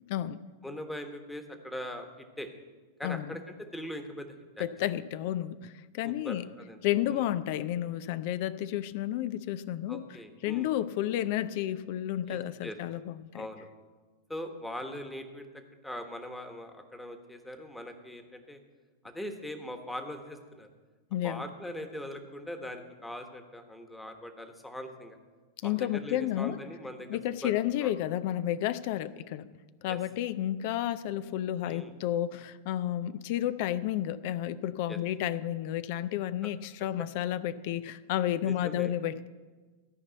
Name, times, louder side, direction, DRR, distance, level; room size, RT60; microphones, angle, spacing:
voice 1, 0.6-2.5 3.0-4.6 6.0-6.8 7.1-7.2 9.9-10.7 12.3-12.8 13.3-13.7 14.3-18.6 19.0-20.7 21.2-25.2 25.6-27.5 27.8-28.0 29.9-30.0 31.6-31.9 34.9-35.0 36.4-36.5 38.4-38.9, left 1 dB, 5° left, 6 dB, 1.3 m, -41 dB
voice 2, 3.0-3.4 4.6-6.4 6.8-10.0 10.4-13.5 21.1-21.4 25.6-26.6 27.1-29.4 29.8-39.3, left 12 dB, 50° left, 16 dB, 0.4 m, -31 dB
13.5 x 5.3 x 8.2 m, 1.4 s
figure-of-eight pair, 95°, 0 cm